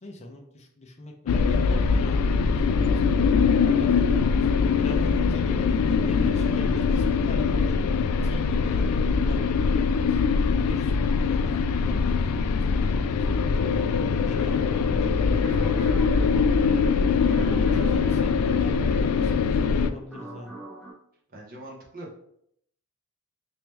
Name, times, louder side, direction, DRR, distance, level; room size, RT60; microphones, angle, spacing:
voice 1, 0.0-3.3 3.6-4.3 4.8-7.9 8.2-10.2 10.7-14.7 15.0-16.0 17.1-20.5, left 1 dB, 30° left, 3 dB, 0.6 m, -41 dB
sound 1, 1.3-19.9, left 5 dB, 85° left, 0.3 m, -22 dB
voice 2, 10.5-10.9 17.3-17.6 21.3-22.1, right 1 dB, 40° right, -2 dB, 0.9 m, -44 dB
sound 2, 14.3-20.9, right 1 dB, ahead, 1.1 m, -44 dB
3.1 x 3.0 x 3.3 m, 0.70 s
head